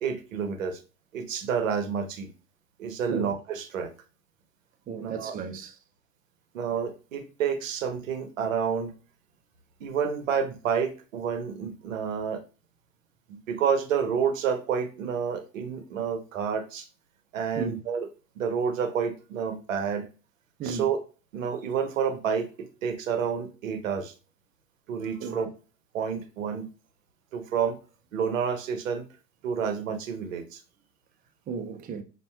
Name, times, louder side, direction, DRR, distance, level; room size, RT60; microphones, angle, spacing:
voice 1, 0.0-0.8 1.1-2.3 2.8-3.9 5.0-5.3 6.5-8.9 9.8-12.4 13.3-16.8 17.3-18.1 18.4-20.1 20.6-21.0 21.3-22.5 22.8-24.1 24.9-25.5 25.9-26.7 27.3-27.8 28.1-29.0 29.4-30.4, right 7 dB, 80° right, 0.8 m, -29 dB
voice 2, 4.9-5.8 17.6-17.8 20.6-20.9 25.2-25.4 31.5-32.0, right 5 dB, 20° right, 0.5 m, -34 dB
5.3 x 2.6 x 2.2 m
hypercardioid pair, 90°, 39 cm